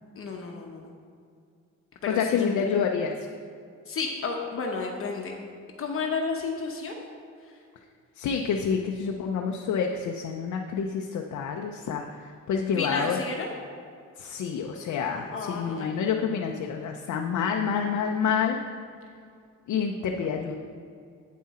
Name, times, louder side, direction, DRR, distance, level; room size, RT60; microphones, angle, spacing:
voice 1, 0.1-0.9 2.1-2.7 3.9-5.3 5.8-7.0 12.8-13.5 15.3-15.9, left 4 dB, 45° left, 1 dB, 0.9 m, -32 dB
voice 2, 2.1-3.1 8.2-13.2 14.2-18.6 19.7-20.5, left 6 dB, 75° left, 2 dB, 0.6 m, -28 dB
8.5 x 7.5 x 4.2 m, 2.3 s
cardioid pair, 145°, 30 cm